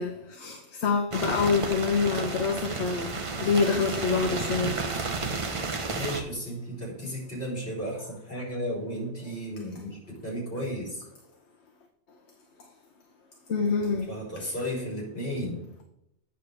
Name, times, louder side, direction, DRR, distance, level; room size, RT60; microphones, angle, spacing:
voice 1, 0.0-4.9 5.9-6.0 13.5-14.1, left 5 dB, 75° left, 3 dB, 1.1 m, -26 dB
sound 1, 1.1-6.2, right 3 dB, 35° right, 0.7 m, -32 dB
voice 2, 5.9-10.0 10.2-11.0 14.1-15.6, equal, 55° left, -4 dB, 3.9 m, -34 dB
9.1 x 6.6 x 3.4 m, 0.81 s
omnidirectional pair, 1.2 m